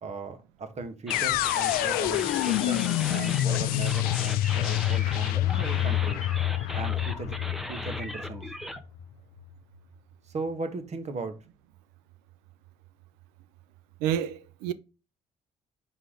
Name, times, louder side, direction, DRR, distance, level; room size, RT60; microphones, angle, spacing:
voice 1, 0.0-6.2 6.7-7.4 7.7-8.5 10.3-11.4, right 3 dB, 50° right, 1.5 m, -37 dB
sound 1, 1.1-9.1, left 15 dB, 80° left, 0.4 m, -27 dB
sound 2, 1.1-8.8, equal, ahead, 0.9 m, -38 dB
voice 2, 14.0-14.7, right 10 dB, 85° right, 0.5 m, -29 dB
5.4 x 4.9 x 3.8 m
supercardioid pair, 60°, 15 cm